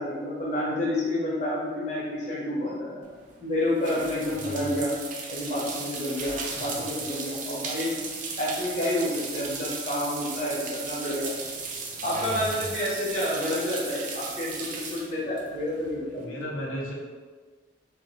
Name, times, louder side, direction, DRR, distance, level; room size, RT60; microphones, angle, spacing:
voice 1, 0.0-3.0 3.4-4.9 5.3-8.0 8.4-11.3 12.0-16.4, left 1 dB, 40° left, -6 dB, 0.7 m, -29 dB
sound 1, 3.0-16.2, right 4 dB, 40° right, 0.4 m, -36 dB
voice 2, 4.3-4.7 6.7-6.8 11.9-12.7 16.1-16.9, equal, 90° left, -4 dB, 0.6 m, -37 dB
2.3 x 2.1 x 3.8 m, 1.5 s
head